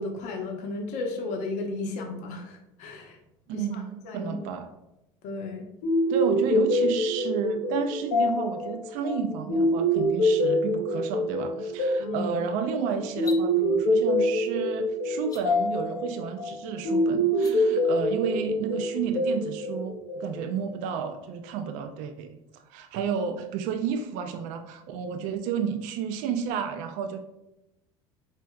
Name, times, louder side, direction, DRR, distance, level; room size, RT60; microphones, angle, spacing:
voice 1, 0.0-3.2 3.5-4.3 5.2-5.7 12.0-12.4, left 2 dB, 60° left, 3 dB, 0.7 m, -34 dB
voice 2, 3.5-4.7 6.1-27.2, right 6 dB, 60° right, 7 dB, 0.4 m, -31 dB
sound 1, 5.8-20.6, equal, 85° left, 1.1 m, -25 dB
sound 2, 13.1-13.4 15.2-15.4 17.3-17.5, left 4 dB, 25° left, 0.7 m, -41 dB
4.5 x 3.1 x 2.3 m, 0.92 s
hypercardioid pair, 75°, 14 cm